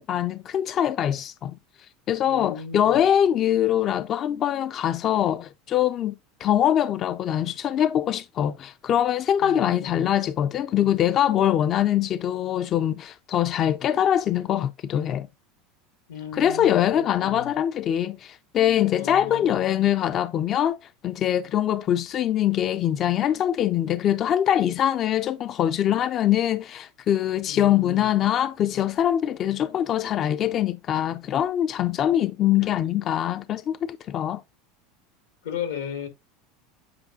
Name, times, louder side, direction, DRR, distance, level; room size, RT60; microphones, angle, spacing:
voice 1, 0.0-1.6 2.1-6.1 6.4-15.3 16.3-20.8 21.0-34.4, left 10 dB, 40° left, 0.3 m, -23 dB
voice 2, 2.3-3.0 9.4-9.9 16.1-17.5 18.9-19.6 27.5-28.1 35.4-36.1, left 7 dB, 90° left, 1.9 m, -35 dB
8.5 x 4.8 x 2.5 m
supercardioid pair, 115°, 0 cm